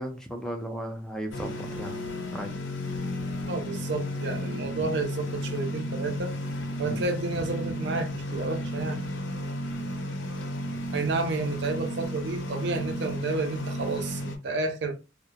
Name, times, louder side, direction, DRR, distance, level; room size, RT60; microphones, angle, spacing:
voice 1, 0.0-2.0 2.3-2.5 6.8-7.0, equal, 5° left, 0.4 m, -35 dB
sound 1, 1.3-14.4, left 1 dB, 75° left, 0.6 m, -33 dB
voice 2, 3.5-6.3 6.8-9.0 10.9-14.9, right 3 dB, 65° right, 0.5 m, -31 dB
2.2 x 2.1 x 2.7 m
head